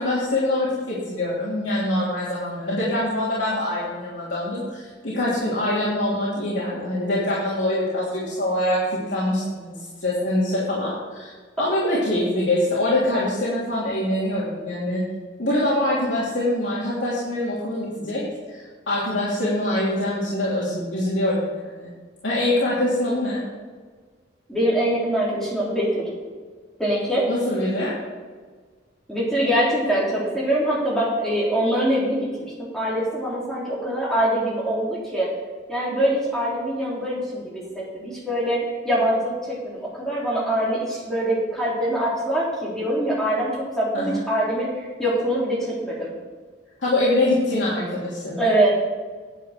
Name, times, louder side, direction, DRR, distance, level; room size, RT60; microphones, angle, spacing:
voice 1, 0.0-11.3 11.6-15.0 15.4-18.2 18.5-21.9 22.2-23.4 27.3-27.9 43.9-44.2 46.8-48.4, left 1 dB, 90° left, -8 dB, 3.0 m, -24 dB
voice 2, 24.5-26.1 26.8-27.3 29.1-35.3 35.7-43.5 43.7-44.7 45.0-46.1 48.4-48.7, right 1 dB, ahead, -7 dB, 3.6 m, -23 dB
10.0 x 8.5 x 6.0 m, 1.5 s
head